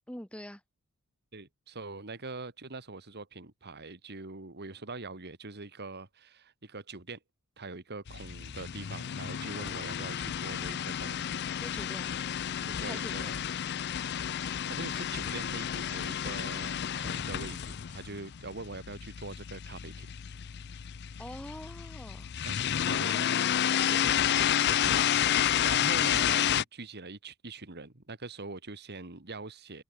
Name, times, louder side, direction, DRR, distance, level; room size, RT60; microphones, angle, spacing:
voice 1, 0.1-0.6 11.6-12.1 12.8-13.4 21.2-22.3 22.9-23.3, equal, 5° left, 2.2 m, -44 dB
voice 2, 1.3-7.2 7.6-11.4 12.6-13.4 14.7-20.1 22.5-25.0 25.2-29.8, right 3 dB, 50° right, 2.2 m, -43 dB
sound 1, 8.1-26.6, left 10 dB, 50° left, 0.5 m, -31 dB
head